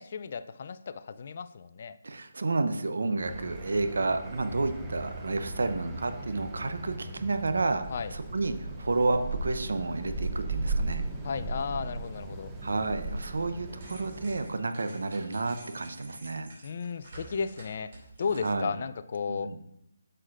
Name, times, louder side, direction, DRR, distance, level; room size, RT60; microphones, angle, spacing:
voice 1, 0.0-2.0 7.9-8.1 11.2-12.5 16.6-17.9 18.2-19.6, left 5 dB, 50° left, 13 dB, 0.4 m, -34 dB
voice 2, 2.0-7.8 8.1-11.0 12.6-16.5 18.4-18.7 19.3-19.6, right 3 dB, 70° right, 8 dB, 0.7 m, -30 dB
sound 1, 3.2-14.5, right 2 dB, 10° right, 0.8 m, -37 dB
sound 2, 13.7-18.8, right 2 dB, 45° right, 2.7 m, -51 dB
9.5 x 6.5 x 2.5 m, 0.77 s
figure-of-eight pair, 150°, 0 cm